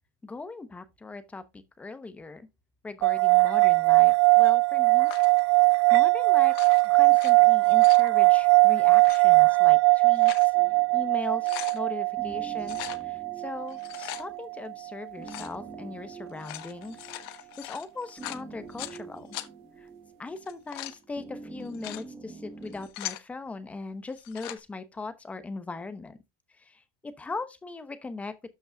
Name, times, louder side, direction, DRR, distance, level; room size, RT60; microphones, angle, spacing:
voice 1, 0.2-2.5 2.8-5.1 5.9-6.5 6.8-10.5 10.9-17.0 17.3-19.3 19.8-19.9 20.2-26.2 26.6-28.3, left 3 dB, 10° left, 0.9 m, -39 dB
sound 1, 3.0-14.4, right 30 dB, 60° right, 0.4 m, -20 dB
sound 2, 5.1-5.4 6.4-7.3 7.6-8.1 8.9-9.2 9.9-10.5 10.9-11.0 11.3-11.8 12.6-13.0 13.7-14.2 15.2-15.6 16.3-19.0 19.3-19.5 20.4-21.0 21.6-22.0 22.6-23.2 24.1-24.6, left 16 dB, 60° left, 1.1 m, -40 dB
sound 3, 10.5-22.9, right 4 dB, 10° right, 1.3 m, -47 dB
12.5 x 5.4 x 2.3 m
supercardioid pair, 155°, 13 cm